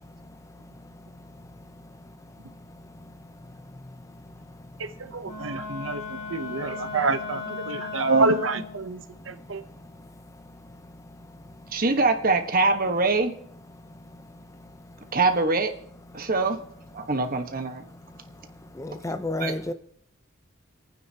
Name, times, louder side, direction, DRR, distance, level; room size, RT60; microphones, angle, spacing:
voice 1, 5.1-6.0 6.3-9.0 9.5-9.6, right 3 dB, 65° right, 0.8 m, -26 dB
Wind instrument woodwind instrument, 5.2-8.9, left 4 dB, 45° left, 7.2 m, -36 dB
voice 2, 11.7-13.3 15.1-15.7 16.1-16.6 16.9-17.8 19.4-19.5, right 3 dB, 45° right, 1.3 m, -23 dB
voice 3, 18.8-19.7, left 2 dB, 15° left, 0.6 m, -30 dB
27.5 x 9.3 x 2.8 m
head